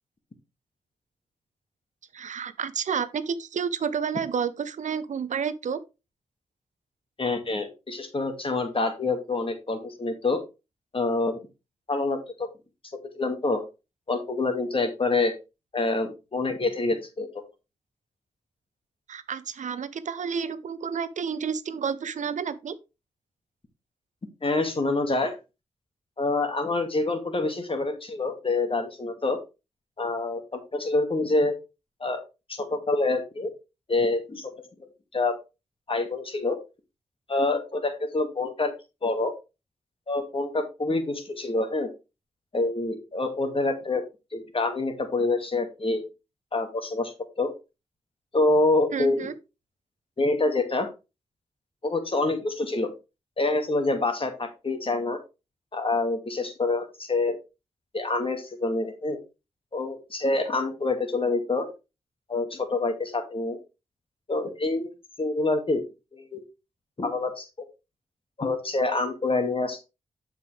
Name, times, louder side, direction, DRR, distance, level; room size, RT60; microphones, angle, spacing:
voice 1, 2.1-5.8 19.1-22.8 48.9-49.3, right 7 dB, 70° right, 0.7 m, -30 dB
voice 2, 7.2-10.4 10.9-11.4 11.9-12.5 13.1-13.6 14.1-15.3 15.7-17.3 24.4-25.4 26.2-29.4 30.0-31.5 32.0-32.2 32.5-33.5 33.9-34.5 35.1-35.4 35.9-36.6 37.3-38.7 39.0-39.3 40.1-41.9 42.5-44.0 44.3-46.0 46.5-47.1 47.4-47.5 48.3-49.3 50.2-50.9 51.8-52.9 53.4-55.2 55.7-57.4 57.9-59.2 59.7-61.7 62.3-63.6 64.3-64.9 65.2-65.8 66.1-66.4 67.0-67.5 68.4-69.8, left 2 dB, 45° left, 2.1 m, -26 dB
6.7 x 6.7 x 3.4 m
supercardioid pair, 40°, 13 cm